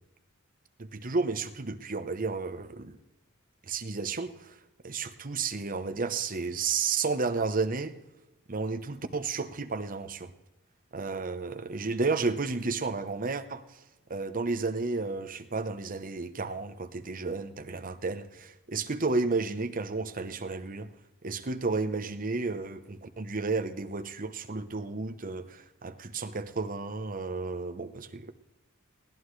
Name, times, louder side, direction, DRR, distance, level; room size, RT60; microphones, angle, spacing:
voice 1, 0.8-3.0 3.7-4.6 4.8-7.9 8.5-10.3 10.9-13.8 14.1-20.9 21.2-28.3, right 4 dB, 40° right, 9 dB, 0.9 m, -32 dB
21.0 x 16.5 x 3.2 m, 0.99 s
head